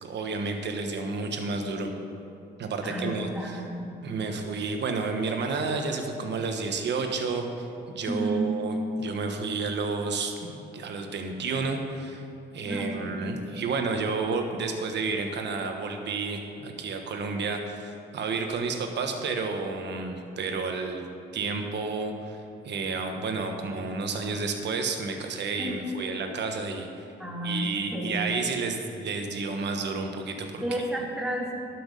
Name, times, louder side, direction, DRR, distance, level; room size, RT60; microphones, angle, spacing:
voice 1, 0.0-1.9 2.6-3.6 4.0-7.7 7.9-12.3 12.5-21.0 21.3-26.9 27.4-30.6, right 4 dB, 60° right, 4 dB, 1.3 m, -31 dB
voice 2, 2.8-4.0 8.1-8.6 12.6-13.2 25.6-26.0 27.2-28.2 30.6-31.5, right 1 dB, 5° right, -3 dB, 2.2 m, -31 dB
11.5 x 6.2 x 5.3 m, 2.8 s
cardioid pair, 90°, 20 cm